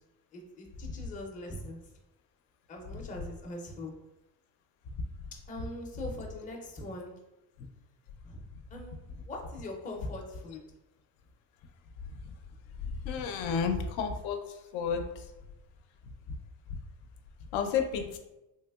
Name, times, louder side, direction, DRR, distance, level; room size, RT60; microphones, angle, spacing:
voice 1, 0.3-1.8 2.7-3.9 5.5-7.1 8.2-8.4 8.7-10.6, left 1 dB, 20° left, 0 dB, 0.4 m, -42 dB
voice 2, 13.1-14.4 14.7-15.0 17.5-18.2, left 6 dB, 90° left, 5 dB, 0.5 m, -30 dB
3.2 x 2.8 x 2.3 m, 0.96 s
cardioid pair, 130°, 46 cm